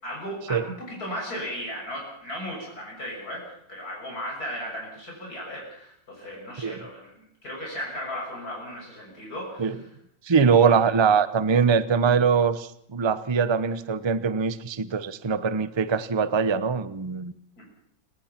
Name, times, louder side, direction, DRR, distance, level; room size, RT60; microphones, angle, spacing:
voice 1, 0.0-9.8 10.4-10.7 17.6-17.7, equal, 55° left, -2 dB, 7.3 m, -36 dB
voice 2, 10.2-17.3, right 6 dB, 30° right, 13 dB, 0.5 m, -22 dB
29.5 x 18.0 x 5.9 m, 0.71 s
omnidirectional pair, 2.0 m